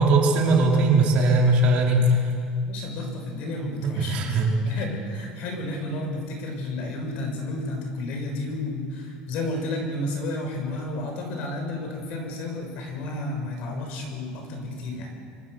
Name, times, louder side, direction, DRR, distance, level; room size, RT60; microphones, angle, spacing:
voice 1, 0.0-2.3 3.8-4.5, right 2 dB, 50° right, -1 dB, 4.7 m, -20 dB
voice 2, 2.6-4.4 4.6-15.1, left 2 dB, 55° left, 2 dB, 6.4 m, -32 dB
26.0 x 24.0 x 6.8 m, 2.4 s
cardioid pair, 160°, 3 cm